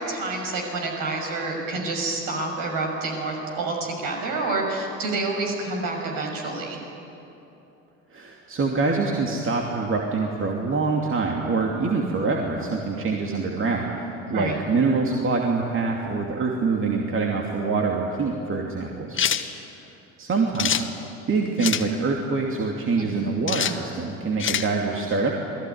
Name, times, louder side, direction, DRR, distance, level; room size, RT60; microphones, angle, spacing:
voice 1, 0.0-6.8 14.3-14.6 23.0-23.3, right 3 dB, 50° right, 1 dB, 6.6 m, -28 dB
voice 2, 8.1-19.2 19.7-19.9 20.2-20.9 21.3-25.4, right 4 dB, 30° right, 0 dB, 2.8 m, -25 dB
sound 1, 19.2-19.5 20.6-20.9 21.6-21.9 23.5-23.8 24.4-24.7, left 9 dB, 30° left, 1.4 m, -24 dB
28.0 x 19.5 x 9.5 m, 3.0 s
figure-of-eight pair, 60°, 41 cm